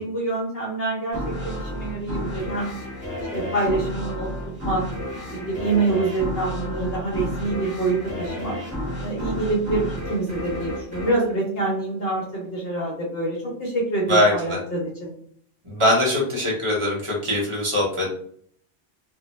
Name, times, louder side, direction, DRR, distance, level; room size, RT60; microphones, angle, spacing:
voice 1, 0.0-2.7 3.3-4.3 4.6-4.8 5.3-8.6 9.0-15.1, right 2 dB, 60° left, -2 dB, 0.9 m, -26 dB
sound 1, 1.1-12.3, left 1 dB, 5° right, 1.0 m, -32 dB
voice 2, 14.1-14.6 15.6-18.1, left 1 dB, 30° right, -2 dB, 0.7 m, -21 dB
2.2 x 2.1 x 2.9 m, 0.62 s
omnidirectional pair, 1.2 m